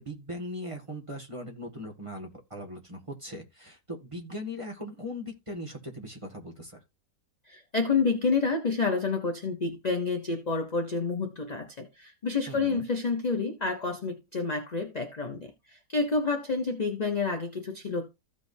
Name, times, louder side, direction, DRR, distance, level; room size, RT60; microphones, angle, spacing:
voice 1, 0.0-6.8 12.5-12.8, left 1 dB, 20° right, 1.9 m, -39 dB
voice 2, 7.5-18.1, left 4 dB, 30° left, 0.8 m, -29 dB
15.5 x 5.1 x 2.7 m
omnidirectional pair, 1.8 m